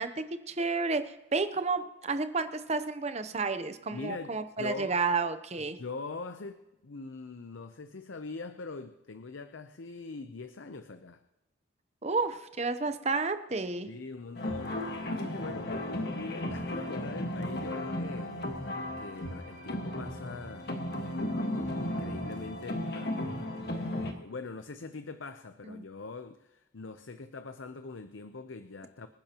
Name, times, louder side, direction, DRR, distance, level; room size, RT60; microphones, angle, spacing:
voice 1, 0.0-5.8 12.0-13.9 25.6-25.8, right 4 dB, 35° right, 10 dB, 0.7 m, -31 dB
voice 2, 3.9-5.0 5.8-11.2 13.9-20.7 21.5-29.1, left 3 dB, 70° left, 9 dB, 0.7 m, -43 dB
sound 1, 14.3-24.1, left 1 dB, 55° left, 1.5 m, -35 dB
26.0 x 10.5 x 3.0 m, 0.99 s
head